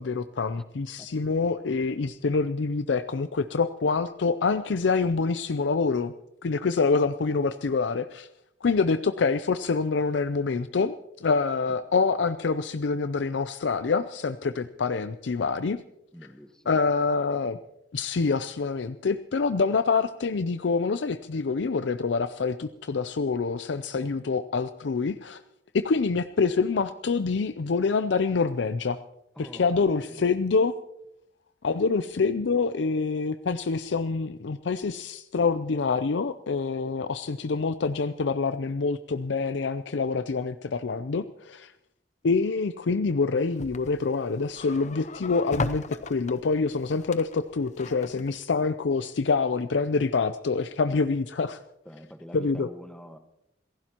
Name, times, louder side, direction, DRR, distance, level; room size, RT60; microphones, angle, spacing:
voice 1, 0.0-6.1 6.4-8.3 8.6-15.8 16.7-17.6 17.9-25.4 25.7-29.0 29.4-30.8 31.6-41.7 42.2-51.6 52.3-52.7, left 4 dB, 80° left, 12 dB, 0.5 m, -26 dB
voice 2, 16.1-16.9 24.0-24.1 29.3-30.3 51.8-53.2, equal, 5° left, 6 dB, 1.4 m, -46 dB
sound 1, 43.4-48.4, left 3 dB, 40° left, 0.7 m, -37 dB
27.5 x 15.5 x 3.0 m, 0.84 s
head